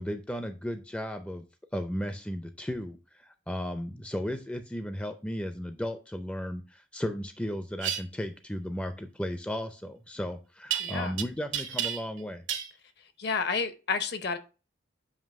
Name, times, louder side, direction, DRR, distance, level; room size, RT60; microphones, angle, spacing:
voice 1, 0.0-1.4 1.7-12.4, equal, 5° left, 0.4 m, -35 dB
sound 1, 7.8-8.0 10.7-11.2 11.5-12.2 12.5-12.7, right 9 dB, 75° right, 0.8 m, -31 dB
voice 2, 10.8-11.1 13.2-14.4, left 5 dB, 55° left, 0.7 m, -30 dB
7.3 x 3.0 x 5.1 m
head